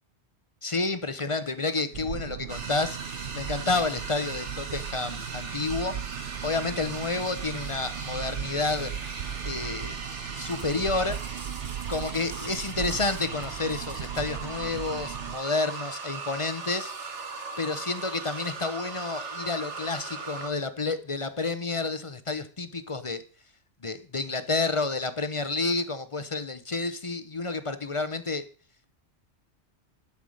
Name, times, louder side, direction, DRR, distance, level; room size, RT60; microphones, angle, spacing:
voice 1, 0.6-8.9 9.4-10.0 10.4-11.2 11.9-17.2 17.6-23.2 23.8-28.4, left 3 dB, 30° left, 11 dB, 0.8 m, -30 dB
sound 1, 1.9-15.4, right 9 dB, 60° right, 0.7 m, -37 dB
sound 2, 2.5-20.5, right 4 dB, 85° right, 1.7 m, -39 dB
12.0 x 5.5 x 6.4 m, 0.42 s
omnidirectional pair, 1.2 m